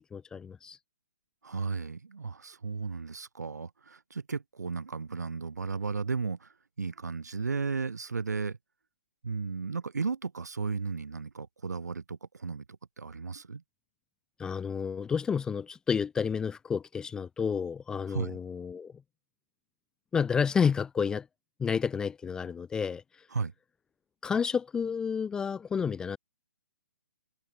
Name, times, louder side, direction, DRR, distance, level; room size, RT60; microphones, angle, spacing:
voice 1, 0.1-0.8 14.4-18.9 20.1-21.3 21.6-23.0 24.2-26.2, left 6 dB, 10° left, 0.4 m, -30 dB
voice 2, 1.4-6.5 6.8-8.6 9.2-13.6 18.1-18.4 23.3-23.5, right 4 dB, 80° right, 2.2 m, -34 dB
hypercardioid pair, 140°, 9 cm